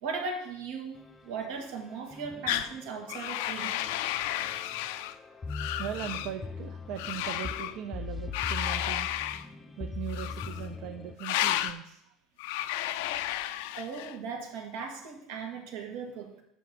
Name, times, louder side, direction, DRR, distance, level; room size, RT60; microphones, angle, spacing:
voice 1, 0.0-3.8 13.8-16.4, right 5 dB, 80° right, 3 dB, 1.9 m, -38 dB
sound 1, 0.9-11.2, left 4 dB, 15° left, 0.4 m, -41 dB
sound 2, 2.5-2.7 3.1-5.1 5.5-6.3 7.0-7.7 8.3-9.4 10.1-10.7 11.2-11.8 12.4-14.1, left 13 dB, 90° left, 0.5 m, -32 dB
voice 2, 5.8-9.1 9.4-12.1, right 10 dB, 60° right, 7 dB, 0.5 m, -40 dB
7.2 x 5.8 x 5.9 m, 0.77 s
cardioid pair, 165°, 0 cm